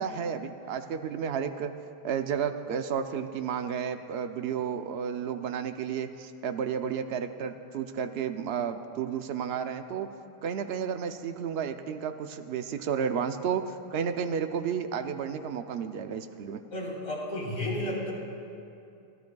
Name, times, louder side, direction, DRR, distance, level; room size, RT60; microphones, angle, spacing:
voice 1, 0.0-1.7 2.0-10.1 10.4-16.6, right 7 dB, 80° right, 8 dB, 0.9 m, -32 dB
voice 2, 16.7-18.1, left 1 dB, 70° left, -6 dB, 3.9 m, -32 dB
29.5 x 12.0 x 2.3 m, 2.6 s
omnidirectional pair, 1.0 m